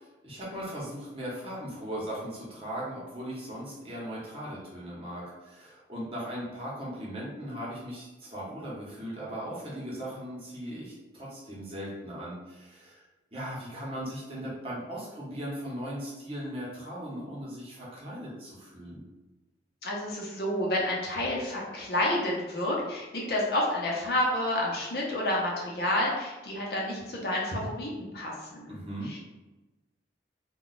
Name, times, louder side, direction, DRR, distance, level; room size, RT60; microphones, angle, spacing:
voice 1, 0.2-13.0 13.3-19.1 28.7-29.1, equal, 30° right, -6 dB, 0.8 m, -38 dB
voice 2, 19.8-28.8 29.0-29.2, left 1 dB, 60° left, -3 dB, 0.7 m, -29 dB
2.3 x 2.2 x 3.9 m, 1.1 s
head